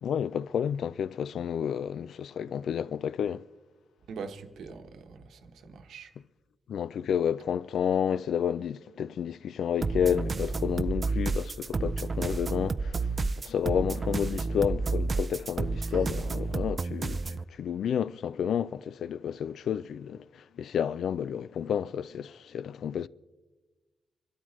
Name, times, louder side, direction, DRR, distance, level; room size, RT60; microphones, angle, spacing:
voice 1, 0.0-3.4 6.7-13.1 13.4-23.1, left 8 dB, 75° left, 0.3 m, -30 dB
voice 2, 4.1-6.1 15.8-16.1, right 5 dB, 85° right, 1.1 m, -43 dB
sound 1, 9.8-17.4, right 3 dB, 35° right, 0.4 m, -30 dB
26.5 x 12.5 x 3.2 m
wide cardioid pair, 125°, 0 cm